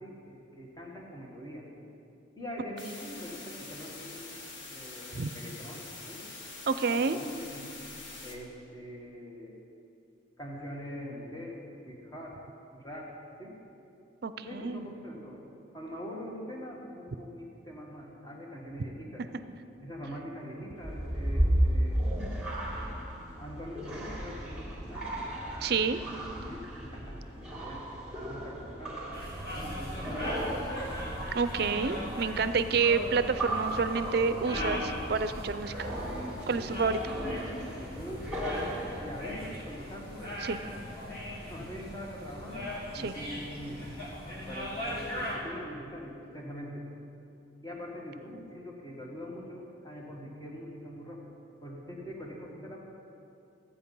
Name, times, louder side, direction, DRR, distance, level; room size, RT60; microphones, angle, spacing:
voice 1, 0.0-1.7 2.4-4.3 4.7-6.3 6.9-7.7 8.2-9.6 10.4-11.6 11.8-12.3 12.7-13.1 13.4-13.5 14.4-15.4 15.7-19.2 19.8-22.0 23.4-25.3 25.8-25.9 26.4-30.4 36.6-36.9 37.8-38.7 39.0-40.3 40.6-40.7 41.5-43.8 44.4-46.8 47.6-51.3 51.6-52.8, equal, 20° left, -2 dB, 1.5 m, -43 dB
sound 1, 2.8-8.4, left 3 dB, 80° left, 1.4 m, -45 dB
voice 2, 6.7-7.2 14.2-14.9 25.6-26.0 31.3-35.9 36.5-37.1 40.4-40.6 42.9-43.2, right 5 dB, 55° right, 12 dB, 0.5 m, -29 dB
sound 2, 20.8-39.5, right 1 dB, 5° right, 2.0 m, -35 dB
sound 3, 29.1-45.3, left 1 dB, 55° left, 3.2 m, -39 dB
14.0 x 8.7 x 5.5 m, 2.6 s
head